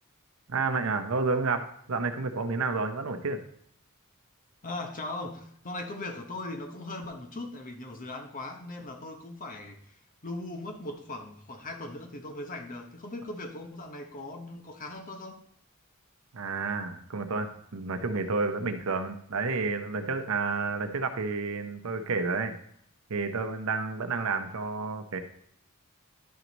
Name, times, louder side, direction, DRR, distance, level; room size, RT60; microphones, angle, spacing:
voice 1, 0.5-3.4 16.3-22.5 23.1-25.2, right 4 dB, 65° right, 0.8 m, -30 dB
voice 2, 4.6-15.4, left 2 dB, 40° left, 0.9 m, -39 dB
11.5 x 4.6 x 4.0 m
head